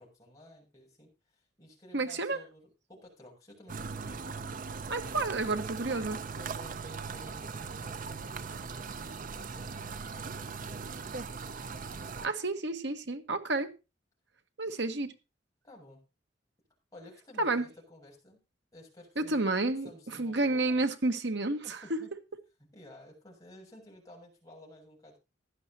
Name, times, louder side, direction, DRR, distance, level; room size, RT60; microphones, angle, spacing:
voice 1, 0.0-4.4 6.3-11.2 11.4-12.1 15.6-16.0 16.9-18.4 18.7-19.4 19.8-20.9 21.6-22.1 22.6-25.2, left 1 dB, 20° left, 7.5 m, -54 dB
voice 2, 1.9-2.4 4.9-6.2 12.2-13.7 14.6-15.1 17.4-17.7 19.2-21.8, right 2 dB, 65° right, 1.5 m, -30 dB
sound 1, 3.7-12.3, right 5 dB, 45° right, 0.7 m, -39 dB
16.0 x 11.5 x 2.9 m
head